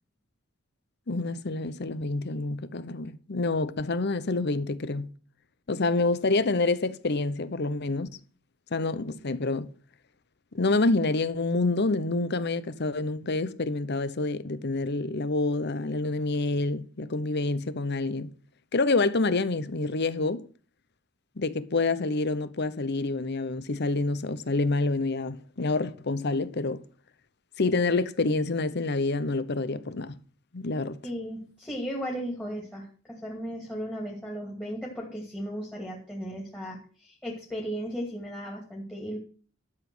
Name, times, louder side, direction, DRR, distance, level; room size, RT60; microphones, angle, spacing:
voice 1, 1.1-5.1 5.7-8.1 8.7-9.7 10.5-18.3 18.7-20.4 21.4-26.8 27.6-30.2 30.5-31.0, left 3 dB, 55° left, 0.9 m, -27 dB
voice 2, 31.0-39.2, equal, 5° left, 2.5 m, -36 dB
12.0 x 7.2 x 6.2 m
head